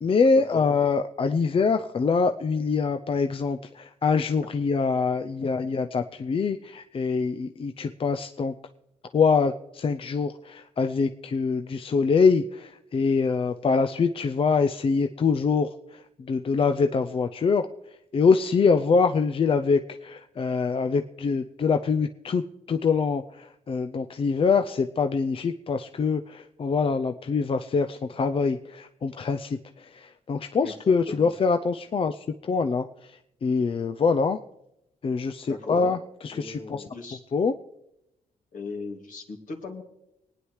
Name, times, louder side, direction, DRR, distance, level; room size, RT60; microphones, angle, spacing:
voice 1, 0.0-8.5 9.1-17.7 18.1-22.4 22.7-34.4 35.0-36.8 37.3-37.5, left 5 dB, 40° left, 7 dB, 0.5 m, -24 dB
voice 2, 30.6-31.3 35.5-35.9 36.3-37.2 38.5-39.8, left 3 dB, 65° left, 2 dB, 2.3 m, -38 dB
24.5 x 9.7 x 3.2 m, 0.87 s
cardioid pair, 95°, 14 cm